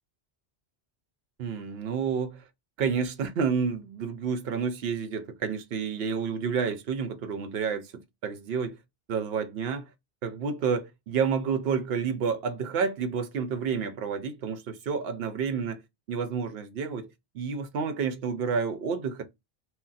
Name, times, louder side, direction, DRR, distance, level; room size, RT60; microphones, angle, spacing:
voice 1, 1.4-2.4 2.8-8.8 9.1-9.9 10.2-15.8 16.1-17.1 17.3-19.2, right 6 dB, 70° right, 0.8 m, -30 dB
2.4 x 2.2 x 3.8 m
omnidirectional pair, 1.1 m